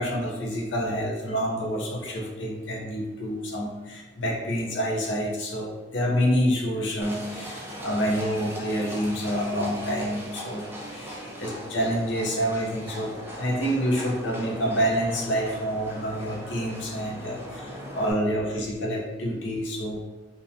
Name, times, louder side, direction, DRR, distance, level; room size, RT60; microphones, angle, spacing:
voice 1, 0.0-10.6 10.9-20.0, equal, 70° left, -1 dB, 0.6 m, -28 dB
Livestock farm animals working animals, 7.0-18.1, equal, 10° right, 0.4 m, -39 dB
2.7 x 2.1 x 2.5 m, 1.1 s
head